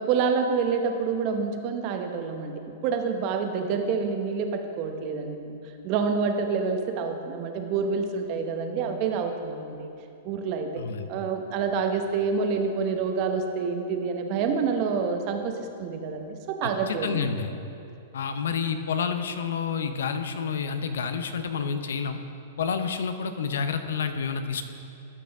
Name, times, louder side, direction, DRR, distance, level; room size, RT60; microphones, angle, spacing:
voice 1, 0.0-9.9 10.2-10.8 11.1-17.2, right 5 dB, 45° right, 5 dB, 0.9 m, -28 dB
voice 2, 10.8-11.1 16.6-17.5 18.1-22.2 22.6-24.6, left 6 dB, 80° left, 9 dB, 0.6 m, -29 dB
13.0 x 6.0 x 3.5 m, 2.6 s
hypercardioid pair, 120°, 0 cm